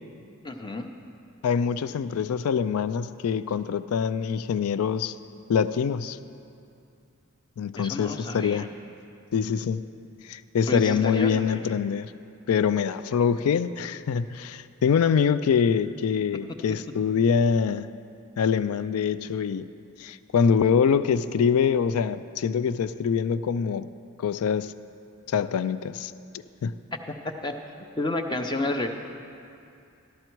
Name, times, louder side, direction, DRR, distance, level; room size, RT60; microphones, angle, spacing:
voice 1, 0.4-0.9 7.8-8.7 10.7-11.8 27.2-27.5 28.0-28.9, left 2 dB, 20° left, 5 dB, 0.6 m, -30 dB
voice 2, 1.4-5.1 5.5-6.2 7.6-8.7 9.3-9.9 10.3-12.1 12.5-17.9 18.4-19.7 20.0-23.9 24.2-24.7 25.3-26.1 26.6-26.7, left 6 dB, 80° left, 14 dB, 0.3 m, -24 dB
14.0 x 11.5 x 4.5 m, 2.6 s
head